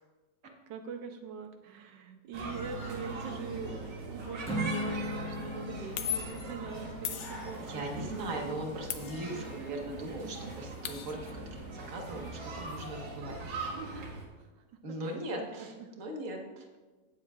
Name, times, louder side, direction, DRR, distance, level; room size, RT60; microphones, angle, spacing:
voice 1, 0.7-8.6 9.3-9.4 9.7-10.5 13.7-14.5 15.0-15.9, right 5 dB, 90° right, 5 dB, 1.4 m, -43 dB
sound 1, 2.3-14.3, right 3 dB, 70° right, 2.1 m, -41 dB
Acoustic guitar / Strum, 4.4-8.9, equal, 5° left, 1.2 m, -39 dB
sound 2, 4.7-4.9 6.0-6.5 7.0-7.9 8.9-9.8 10.1-10.2 10.4-11.3, left 10 dB, 75° left, 1.2 m, -38 dB
voice 2, 7.6-13.4 14.8-16.7, right 1 dB, 50° right, 1 dB, 1.7 m, -39 dB
16.5 x 7.7 x 2.4 m, 1.3 s
omnidirectional pair, 1.9 m